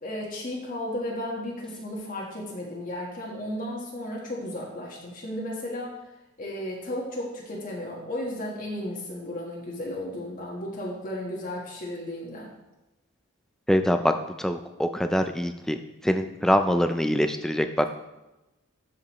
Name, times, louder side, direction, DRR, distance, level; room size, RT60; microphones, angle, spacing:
voice 1, 0.0-6.0 6.4-12.5, left 1 dB, 40° left, -3 dB, 1.4 m, -34 dB
voice 2, 13.7-14.1 14.4-15.8 16.0-17.9, equal, ahead, 7 dB, 0.4 m, -24 dB
12.5 x 5.2 x 3.1 m, 1.0 s
head